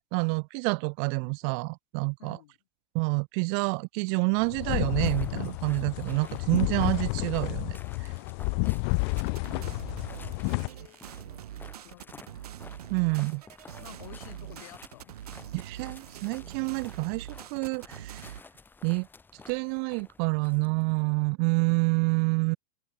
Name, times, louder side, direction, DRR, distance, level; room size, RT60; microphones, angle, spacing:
voice 1, 0.0-2.4 2.9-8.1 12.9-13.4 15.5-18.3 18.8-19.1 19.5-22.6, right 40 dB or more, 40° right, 0.4 m, -28 dB
voice 2, 2.2-2.6 8.4-12.5 13.8-15.5, left 16 dB, 70° left, 6.7 m, -52 dB
sound 1, 4.4-10.7, left 34 dB, 45° left, 0.6 m, -30 dB
sound 2, 4.7-21.0, left 4 dB, 10° left, 5.2 m, -53 dB
sound 3, 9.2-18.4, right 11 dB, 90° right, 3.9 m, -44 dB
supercardioid pair, 145°, 19 cm